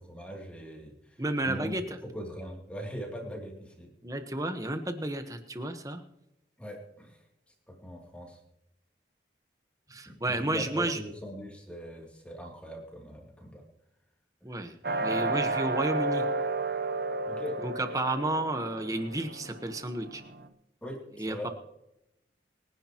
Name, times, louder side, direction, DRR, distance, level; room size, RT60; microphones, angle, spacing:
voice 1, 0.0-3.9 6.6-7.2 7.7-8.4 10.0-13.6 17.3-17.6 20.8-21.5, equal, 5° left, 0 dB, 2.9 m, -41 dB
voice 2, 1.2-1.8 4.0-6.0 9.9-11.0 14.4-16.3 17.6-20.2 21.2-21.5, right 2 dB, 20° right, 7 dB, 1.2 m, -32 dB
sound 1, 14.8-20.5, right 3 dB, 55° right, 1.0 m, -32 dB
24.5 x 10.5 x 3.0 m, 0.87 s
head